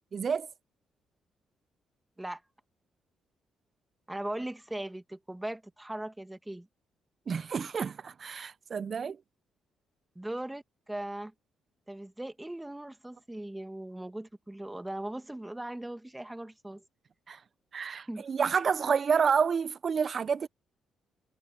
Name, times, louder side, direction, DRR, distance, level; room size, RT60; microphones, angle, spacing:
voice 1, 0.1-0.5 7.3-9.2 17.3-17.4 17.7-20.5, right 6 dB, 45° right, 0.4 m, -29 dB
voice 2, 4.1-6.7 10.2-11.3 11.9-16.8 18.1-18.2, right 1 dB, 10° right, 2.0 m, -39 dB
cardioid pair, 90°, 0 cm